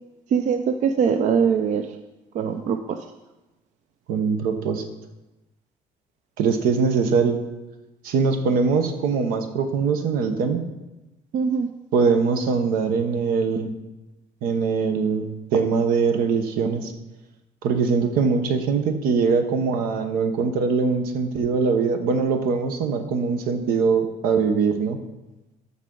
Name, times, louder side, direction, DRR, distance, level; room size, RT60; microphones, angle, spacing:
voice 1, 0.3-1.8 2.3-3.0 11.3-11.7, right 6 dB, 55° right, 7 dB, 0.5 m, -22 dB
voice 2, 4.1-4.8 6.4-7.4 8.0-10.6 11.9-13.8 14.4-16.9 17.6-25.0, right 5 dB, 85° right, 7 dB, 1.0 m, -22 dB
13.5 x 5.7 x 3.8 m, 1.0 s
cardioid pair, 135°, 15 cm